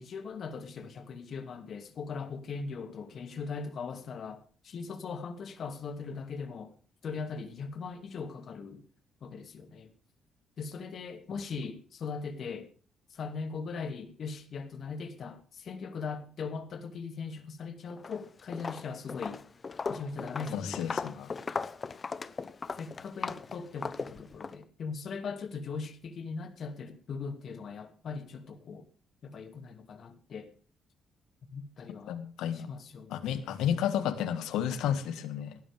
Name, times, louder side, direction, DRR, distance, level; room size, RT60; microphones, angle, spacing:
voice 1, 0.0-6.7 7.0-8.8 9.2-9.9 10.6-12.7 13.1-19.4 19.9-20.9 22.8-28.8 29.2-30.5 31.5-32.2 32.5-33.3, left 5 dB, 60° left, 2.5 m, -40 dB
Walk footsteps, 17.9-18.2 18.5-24.6, left 4 dB, 35° left, 0.9 m, -37 dB
voice 2, 20.5-21.3 32.1-32.7 33.1-35.6, left 9 dB, 90° left, 1.7 m, -32 dB
17.5 x 12.5 x 3.6 m
cardioid pair, 90°, 0 cm